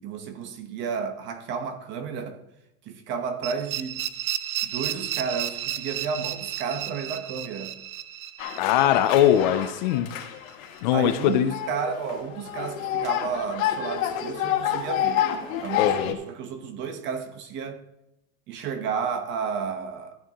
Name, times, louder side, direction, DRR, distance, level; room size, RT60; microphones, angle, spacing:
voice 1, 0.0-2.4 2.8-4.1 4.6-7.7 10.9-15.3 15.6-17.8 18.5-20.2, right 6 dB, 30° right, 1.0 m, -32 dB
sound 1, 3.4-10.2, right 12 dB, 90° right, 0.9 m, -33 dB
sound 2, 8.4-16.1, left 10 dB, 75° left, 1.9 m, -29 dB
voice 2, 8.6-10.1 10.8-11.5 15.8-16.2, left 11 dB, 35° left, 0.5 m, -21 dB
14.0 x 8.9 x 3.0 m
supercardioid pair, 160°, 41 cm